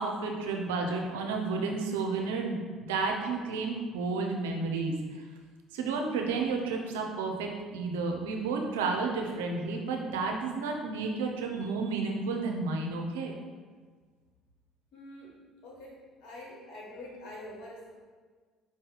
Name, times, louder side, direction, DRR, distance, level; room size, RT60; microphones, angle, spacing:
voice 1, 0.0-4.9 5.7-13.4, right 4 dB, 90° right, 2 dB, 0.6 m, -31 dB
voice 2, 14.9-15.3 15.6-18.0, left 1 dB, 70° left, -3 dB, 1.3 m, -45 dB
4.8 x 2.7 x 3.9 m, 1.5 s
hypercardioid pair, 65°, 0 cm